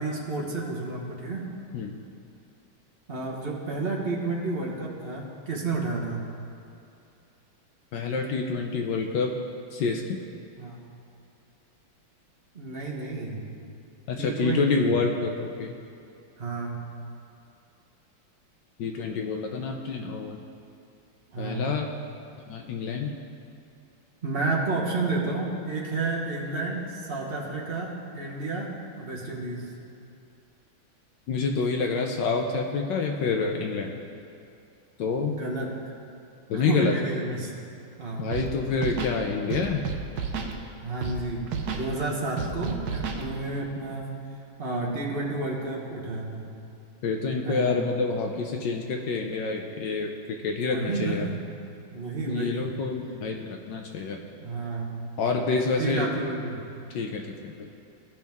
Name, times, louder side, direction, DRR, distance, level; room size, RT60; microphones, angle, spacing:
voice 1, 0.0-1.4 3.1-6.2 10.6-10.8 12.5-13.4 14.2-14.9 16.4-16.8 21.3-21.7 24.2-29.7 35.3-35.9 36.5-37.5 38.0-38.3 40.8-41.4 41.7-44.0 44.6-46.4 47.4-47.8 50.6-51.3 51.9-52.7 54.4-55.0 55.8-56.6, right 3 dB, 35° right, -3 dB, 1.1 m, -31 dB
voice 2, 7.9-9.3 9.7-10.2 14.1-15.8 18.8-20.4 21.4-21.9 22.5-23.1 31.3-34.0 35.0-35.4 36.5-36.9 38.2-39.9 47.0-50.1 50.4-51.3 52.3-54.2 55.2-56.1 56.9-57.7, left 4 dB, 70° left, 2 dB, 1.2 m, -27 dB
Scratching (performance technique), 38.3-38.5 38.8-39.2 39.5-40.5 41.0-41.2 41.5-41.8 42.4-43.2, right 6 dB, 65° right, 1.1 m, -31 dB
15.0 x 5.7 x 3.5 m, 2.7 s
omnidirectional pair, 2.2 m